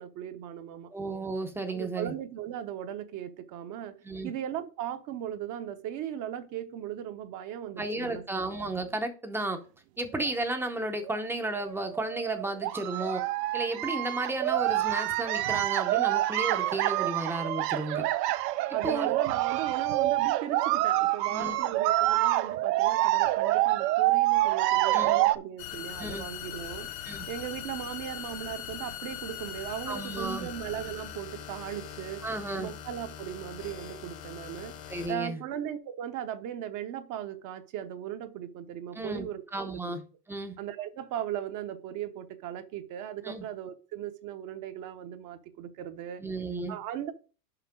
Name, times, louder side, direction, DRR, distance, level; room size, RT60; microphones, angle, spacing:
voice 1, 0.0-0.9 1.7-3.9 4.2-8.4 17.9-18.3 18.7-32.2 32.6-34.8 35.1-39.4 39.7-40.0 40.6-46.2 46.7-47.1, right 10 dB, 40° right, 0.8 m, -38 dB
voice 2, 0.9-2.1 4.0-4.3 7.8-9.6 10.0-13.2 13.5-18.1 18.8-19.1 21.3-21.6 24.9-25.2 26.0-26.3 27.0-27.3 29.9-30.5 32.2-32.7 34.9-35.4 38.9-40.0 40.3-40.6 43.2-43.5 46.2-46.8, right 2 dB, 5° right, 0.6 m, -33 dB
sound 1, 10.1-10.3 11.0-11.2 11.6-25.4, right 16 dB, 75° right, 0.8 m, -27 dB
sound 2, 25.6-35.1, left 10 dB, 45° left, 1.0 m, -41 dB
5.9 x 5.5 x 5.1 m
supercardioid pair, 145°, 48 cm